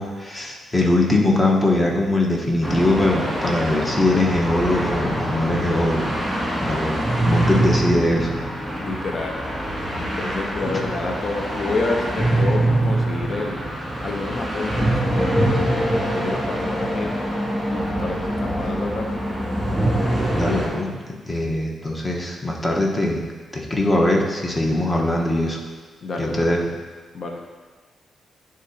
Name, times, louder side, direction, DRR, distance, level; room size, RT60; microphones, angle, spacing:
voice 1, 0.0-6.1 6.6-7.0 7.2-8.3 20.3-23.2 23.5-25.6 26.2-26.6, left 1 dB, 20° left, -1 dB, 1.1 m, -21 dB
sound 1, 2.6-20.7, right 1 dB, 10° right, 1.9 m, -24 dB
voice 2, 8.8-9.4 9.7-13.7 14.0-17.2 17.7-19.2 26.0-26.6 27.1-27.4, left 3 dB, 55° left, 2 dB, 0.7 m, -29 dB
9.9 x 3.8 x 2.8 m, 1.4 s
cardioid pair, 85°, 0 cm